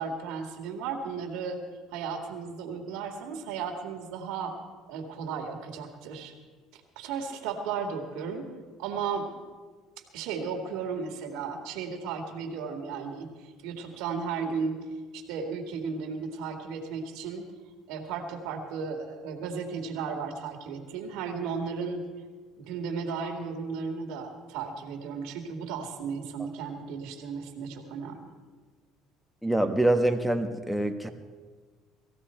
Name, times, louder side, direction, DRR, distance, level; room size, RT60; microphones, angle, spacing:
voice 1, 0.0-1.6 1.9-4.6 4.9-6.3 7.0-8.5 8.8-9.3 10.1-14.8 15.1-17.4 17.9-22.0 22.6-28.3, right 5 dB, 75° right, 3 dB, 1.9 m, -35 dB
voice 2, 29.4-31.1, right 1 dB, ahead, 8 dB, 1.4 m, -25 dB
19.5 x 15.5 x 4.4 m, 1.4 s
supercardioid pair, 110°, 0 cm